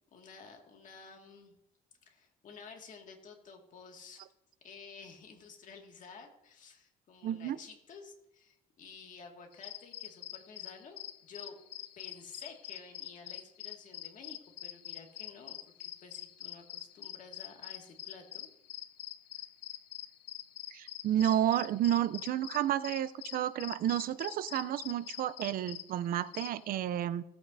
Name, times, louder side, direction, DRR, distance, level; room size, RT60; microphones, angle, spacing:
voice 1, 0.1-1.5 2.0-4.3 4.6-11.6 12.0-18.5, left 5 dB, 50° left, 2 dB, 2.0 m, -52 dB
voice 2, 7.2-7.6 20.7-27.2, right 11 dB, 60° right, 15 dB, 0.5 m, -31 dB
sound 1, 9.5-26.8, left 13 dB, 80° left, 0.7 m, -45 dB
17.5 x 8.4 x 2.7 m, 0.86 s
cardioid pair, 110°, 17 cm